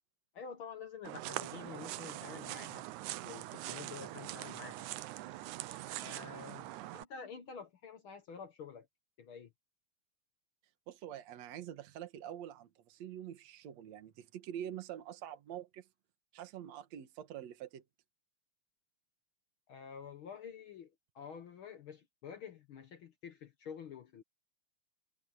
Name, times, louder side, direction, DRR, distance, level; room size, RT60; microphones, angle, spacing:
voice 1, 0.3-2.9 3.2-4.9 6.0-8.9 9.2-9.5 19.7-24.2, left 6 dB, 60° left, 1.5 m, -49 dB
sound 1, 1.0-7.0, right 16 dB, 80° right, 2.1 m, -43 dB
voice 2, 10.9-15.9 16.3-17.8, right 10 dB, 65° right, 2.6 m, -46 dB
omnidirectional pair, 3.4 m